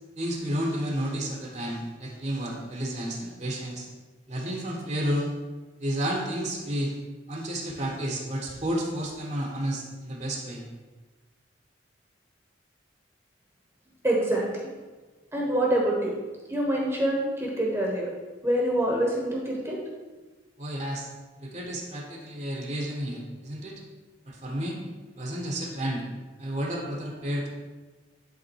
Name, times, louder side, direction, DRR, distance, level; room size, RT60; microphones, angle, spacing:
voice 1, 0.2-3.9 4.3-5.3 5.8-6.9 7.3-10.6 20.6-21.1 21.4-23.8 24.3-24.8 25.2-26.0 26.4-27.5, right 1 dB, 40° right, 0 dB, 1.2 m, -31 dB
voice 2, 14.0-14.7 15.3-16.1 16.5-18.1 18.4-19.8, right 1 dB, 15° right, -3 dB, 1.2 m, -25 dB
11.0 x 3.7 x 4.6 m, 1.3 s
head